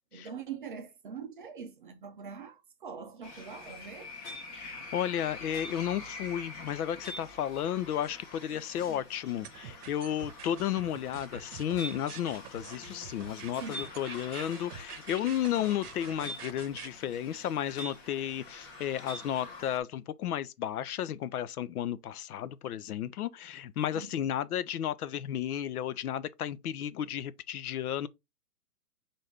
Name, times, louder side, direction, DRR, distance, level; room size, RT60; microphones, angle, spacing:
voice 1, 0.1-4.1 13.6-13.9 23.9-24.3, right 6 dB, 35° right, 0.5 m, -43 dB
sound 1, 3.2-19.8, left 2 dB, 20° left, 1.0 m, -46 dB
voice 2, 4.5-28.1, left 10 dB, 70° left, 0.6 m, -33 dB
sound 2, 9.4-16.9, right 8 dB, 70° right, 0.8 m, -46 dB
5.7 x 2.6 x 3.3 m
hypercardioid pair, 155°, 47 cm